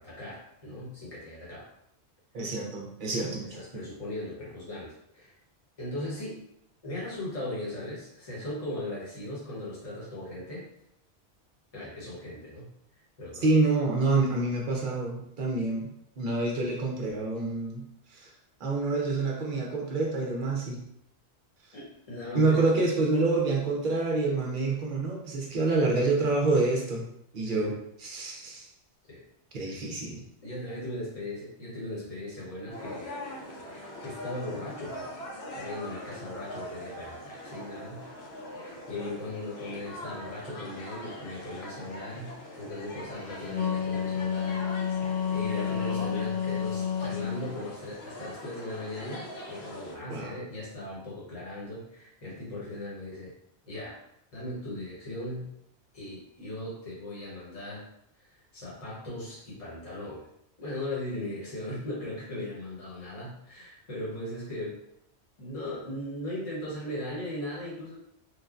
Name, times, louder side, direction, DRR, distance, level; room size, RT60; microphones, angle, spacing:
voice 1, 0.0-1.7 2.4-2.5 3.5-5.3 5.8-6.4 6.8-10.7 11.7-12.7 13.2-13.5 21.7-22.7 27.4-27.8 29.1-29.2 29.5-29.7 30.4-33.2 33.6-35.1 35.5-38.1 38.5-53.3 53.6-54.0 54.3-55.5 55.9-57.9 58.2-60.3 60.6-64.8 65.4-68.0, left 1 dB, 35° left, -7 dB, 1.0 m, -38 dB
voice 2, 2.3-3.6 13.4-15.9 16.2-17.8 18.1-18.3 18.6-20.8 22.3-27.1 27.3-27.7 28.0-28.7 29.5-30.2 50.1-50.3, right 3 dB, 55° right, -1 dB, 0.6 m, -27 dB
sound 1, 32.7-50.0, left 1 dB, 65° left, 0.9 m, -42 dB
Wind instrument woodwind instrument, 43.3-47.5, left 7 dB, 10° left, 0.4 m, -30 dB
3.2 x 2.2 x 2.4 m, 0.77 s
omnidirectional pair, 1.2 m